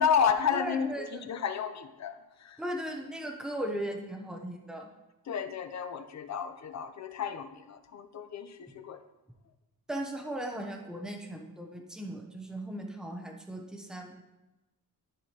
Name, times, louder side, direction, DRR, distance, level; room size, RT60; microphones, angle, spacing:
voice 1, 0.0-2.6 5.3-9.0, left 7 dB, 50° left, 9 dB, 0.6 m, -31 dB
voice 2, 0.5-1.3 2.6-4.9 8.7-8.8 9.9-14.2, right 1 dB, ahead, 1 dB, 0.8 m, -37 dB
13.0 x 4.7 x 2.9 m, 1.0 s
wide cardioid pair, 165°, 36 cm